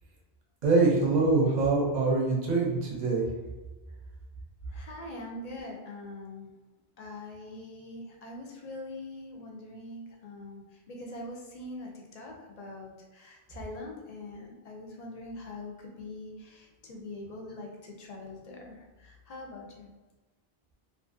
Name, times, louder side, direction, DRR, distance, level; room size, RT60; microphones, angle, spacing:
voice 1, 0.6-3.3, right 3 dB, 50° right, -2 dB, 0.7 m, -24 dB
voice 2, 4.7-6.5 7.0-19.9, left 2 dB, 50° left, 0 dB, 0.5 m, -43 dB
2.5 x 2.4 x 2.5 m, 1.2 s
omnidirectional pair, 1.0 m